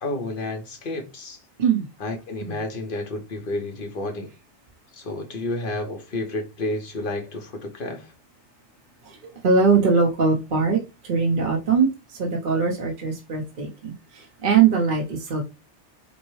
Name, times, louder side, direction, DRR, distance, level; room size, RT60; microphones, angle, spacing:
voice 1, 0.0-1.4 2.0-4.3 4.9-8.1, left 2 dB, 50° left, 1.0 m, -31 dB
voice 2, 9.0-15.4, right 5 dB, 50° right, 0.9 m, -22 dB
5.3 x 2.1 x 3.1 m
omnidirectional pair, 1.2 m